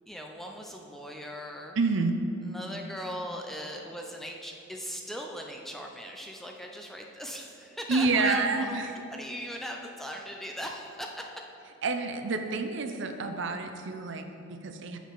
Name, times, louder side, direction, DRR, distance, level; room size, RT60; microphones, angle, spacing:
voice 1, 0.1-1.8 2.4-11.3, equal, ahead, 1 dB, 0.4 m, -39 dB
voice 2, 1.8-2.2 7.9-8.9 11.8-15.0, right 3 dB, 60° right, 7 dB, 0.5 m, -28 dB
6.6 x 6.2 x 5.4 m, 2.8 s
head